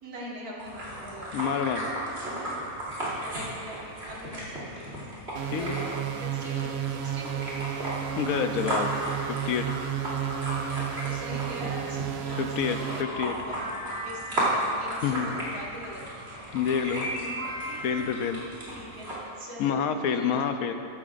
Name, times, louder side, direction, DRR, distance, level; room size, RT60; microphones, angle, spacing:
voice 1, 0.0-1.4 2.3-2.5 3.2-5.2 5.5-7.4 11.0-13.7 14.0-16.0 17.0-18.1 18.7-19.1 19.4-19.8 20.1-20.5, equal, 80° right, -5 dB, 2.4 m, -42 dB
sound 1, 0.6-19.1, right 1 dB, 45° right, 3.0 m, -35 dB
voice 2, 1.3-1.9 5.5-5.8 8.2-8.9 9.3-9.7 12.4-13.3 15.0-15.3 16.5-17.1 17.8-18.4 19.6-20.7, left 7 dB, 75° left, 7 dB, 1.1 m, -28 dB
sound 2, 5.4-13.0, right 10 dB, 65° right, 0.6 m, -32 dB
sound 3, 12.7-14.6 16.8-18.3, equal, 50° left, 2.7 m, -37 dB
14.0 x 12.0 x 2.5 m, 2.5 s
omnidirectional pair, 1.5 m